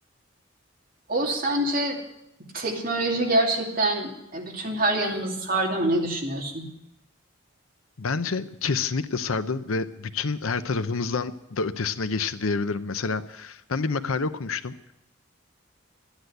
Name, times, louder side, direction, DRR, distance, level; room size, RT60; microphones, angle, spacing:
voice 1, 1.1-2.0 2.5-6.7, right 1 dB, 45° right, -1 dB, 2.7 m, -25 dB
voice 2, 8.0-14.7, left 4 dB, 85° left, 12 dB, 0.7 m, -28 dB
13.0 x 10.5 x 8.0 m, 0.83 s
head